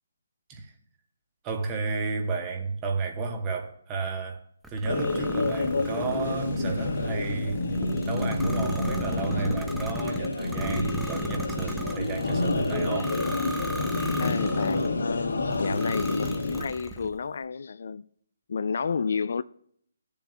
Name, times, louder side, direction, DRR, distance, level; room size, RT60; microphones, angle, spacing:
voice 1, 1.4-7.6 8.0-13.2, right 4 dB, 20° right, 1.2 m, -32 dB
sound 1, 4.6-14.9 15.5-17.2, right 2 dB, 5° right, 0.5 m, -38 dB
sound 2, 4.9-16.6, left 2 dB, 80° left, 1.4 m, -28 dB
voice 2, 14.2-18.1 18.5-19.4, left 5 dB, 60° left, 0.3 m, -31 dB
18.5 x 6.9 x 2.4 m
hypercardioid pair, 150°, 0 cm